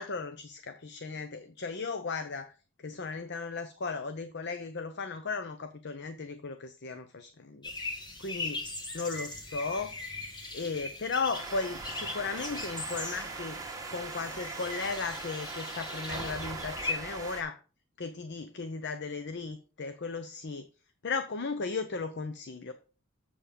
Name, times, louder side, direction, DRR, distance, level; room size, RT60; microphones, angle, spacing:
voice 1, 0.0-2.5 2.8-7.7 8.2-8.6 8.9-9.9 10.5-13.6 13.9-17.6 18.0-20.7 21.0-22.7, left 4 dB, 55° left, 9 dB, 0.7 m, -36 dB
sound 1, 7.6-16.9, left 3 dB, 20° left, 1.7 m, -40 dB
Rain on Corrugated Iron, 11.3-17.4, right 3 dB, 15° right, 1.6 m, -40 dB
7.5 x 6.8 x 5.2 m, 0.36 s
head